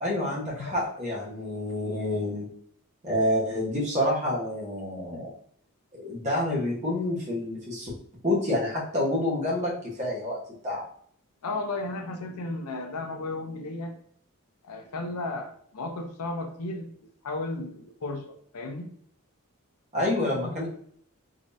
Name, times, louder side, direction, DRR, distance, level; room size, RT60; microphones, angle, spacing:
voice 1, 0.0-2.5 3.0-5.3 5.9-7.9 8.2-10.4 10.6-10.8 19.9-20.7, left 1 dB, 30° right, -5 dB, 1.1 m, -28 dB
voice 2, 11.4-14.0 14.6-18.9 20.3-20.5, left 2 dB, 90° left, 4 dB, 0.6 m, -34 dB
3.7 x 3.1 x 2.6 m, 0.63 s
head